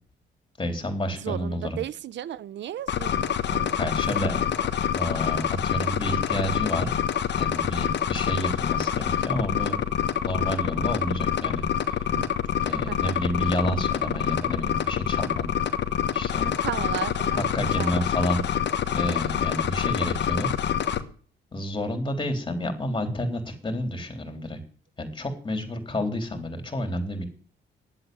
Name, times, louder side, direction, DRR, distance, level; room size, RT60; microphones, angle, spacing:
voice 1, 0.6-1.8 3.8-6.9 7.4-9.8 10.2-12.0 12.6-15.5 16.1-16.5 17.3-18.4 18.9-20.5 21.5-24.6 25.0-27.2, left 1 dB, 25° left, 3.8 m, -30 dB
voice 2, 1.2-3.9 12.1-12.3 12.6-13.2 16.4-17.5 17.8-18.1, right 11 dB, 65° right, 0.8 m, -35 dB
sound 1, 2.9-21.0, left 9 dB, 60° left, 1.3 m, -26 dB
11.0 x 8.1 x 9.4 m
cardioid pair, 90°, 20 cm